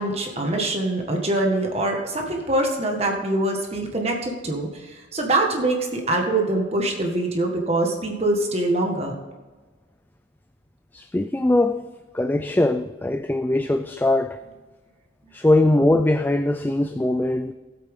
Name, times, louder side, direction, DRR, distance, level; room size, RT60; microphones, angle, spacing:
voice 1, 0.0-9.2, right 2 dB, 35° right, 1.6 m, -24 dB
voice 2, 10.9-11.8 12.1-14.4 15.3-17.5, left 1 dB, 10° left, 0.3 m, -21 dB
17.0 x 8.2 x 3.7 m
head